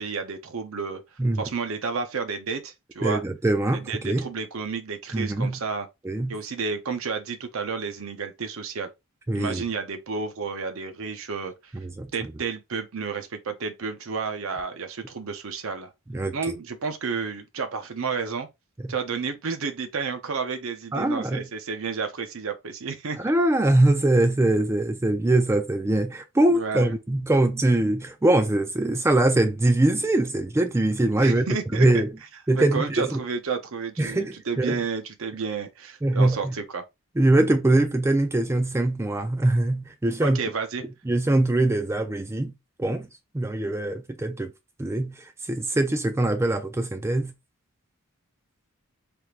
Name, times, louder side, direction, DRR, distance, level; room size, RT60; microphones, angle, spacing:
voice 1, 0.0-1.0 1.4-3.2 3.8-5.9 6.3-8.9 9.3-11.5 12.1-15.9 16.3-18.5 18.9-23.2 26.5-26.9 31.2-32.0 32.6-36.8 40.2-40.8, right 5 dB, 65° right, 0.6 m, -31 dB
voice 2, 3.0-4.3 5.1-5.6 6.0-6.4 9.3-9.6 11.7-12.3 16.1-16.6 18.8-18.9 20.9-21.5 23.2-31.5 31.7-32.1 32.5-33.2 34.0-34.8 36.0-36.6 37.2-40.4 41.1-42.5 42.8-43.1 43.3-44.5 44.8-47.3, right 2 dB, 10° right, 0.3 m, -23 dB
3.4 x 3.0 x 2.4 m
head